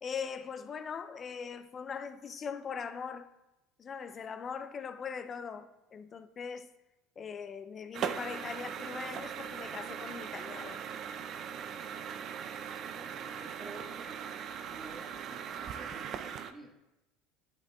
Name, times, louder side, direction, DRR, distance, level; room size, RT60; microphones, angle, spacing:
voice 1, 0.0-3.3 3.8-6.7 7.2-10.8, left 6 dB, 35° left, 0.5 m, -41 dB
sound 1, 7.9-16.5, right 8 dB, 50° right, 0.5 m, -40 dB
voice 2, 12.7-14.2 14.7-16.7, right 2 dB, 20° right, 1.5 m, -51 dB
10.5 x 8.3 x 2.4 m
hypercardioid pair, 80°, 0 cm